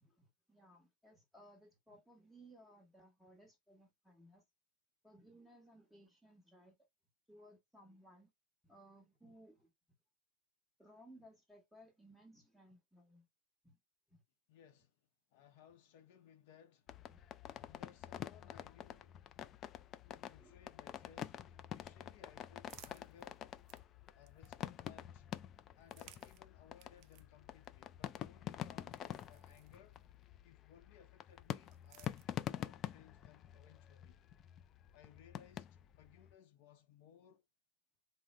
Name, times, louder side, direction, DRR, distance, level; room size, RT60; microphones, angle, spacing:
voice 1, 0.0-4.4 5.0-6.8 7.3-8.3 8.6-9.7 10.8-13.3 13.6-13.8 14.1-14.2 17.1-17.2 20.4-20.6, right 1 dB, ahead, 1.1 m, -62 dB
voice 2, 14.5-17.0 17.4-19.2 20.1-23.5 24.1-25.3 25.7-30.0 30.4-34.2 34.9-37.4, left 9 dB, 60° left, 0.7 m, -63 dB
sound 1, 16.9-36.3, left 10 dB, 30° left, 0.3 m, -47 dB
sound 2, 22.4-24.9 25.7-30.3 31.3-32.8, right 12 dB, 45° right, 0.4 m, -65 dB
3.7 x 2.1 x 3.1 m
supercardioid pair, 140°, 0 cm